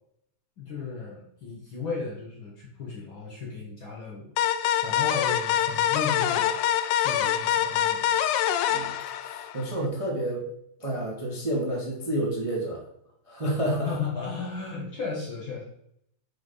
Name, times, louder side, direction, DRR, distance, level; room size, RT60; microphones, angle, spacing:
voice 1, 0.6-4.3 4.8-6.5 6.9-8.1 13.7-15.6, left 5 dB, 55° left, -2 dB, 1.4 m, -35 dB
sound 1, 4.4-9.8, left 10 dB, 85° left, 2.1 m, -25 dB
voice 2, 9.2-10.5 10.8-12.8 13.3-13.9, right 1 dB, 55° right, -3 dB, 0.3 m, -29 dB
6.2 x 4.8 x 5.4 m, 0.74 s
omnidirectional pair, 3.6 m